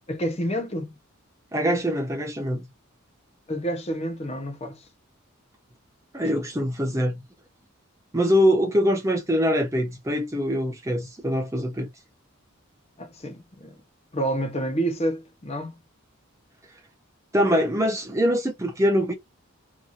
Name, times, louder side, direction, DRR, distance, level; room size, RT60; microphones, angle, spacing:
voice 1, 0.1-0.9 3.5-4.8 13.0-13.7 14.1-15.8, right 1 dB, 30° left, 0.8 m, -29 dB
voice 2, 1.5-2.7 6.1-7.2 8.1-11.9 17.3-19.1, equal, 15° right, 0.5 m, -23 dB
2.9 x 2.6 x 2.4 m
head